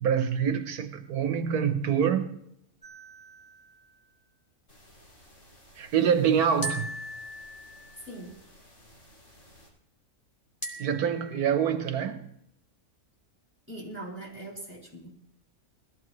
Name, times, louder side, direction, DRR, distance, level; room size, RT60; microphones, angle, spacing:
voice 1, 0.0-2.3 5.8-7.0 10.8-12.3, right 8 dB, 90° right, 1.5 m, -26 dB
sound 1, 2.8-4.3 6.6-8.3 10.6-11.7, right 1 dB, 15° left, 2.3 m, -40 dB
sound 2, 4.7-9.7, equal, 55° left, 6.1 m, -56 dB
voice 2, 13.7-15.1, right 1 dB, 10° right, 6.2 m, -41 dB
21.0 x 15.0 x 3.2 m
omnidirectional pair, 1.5 m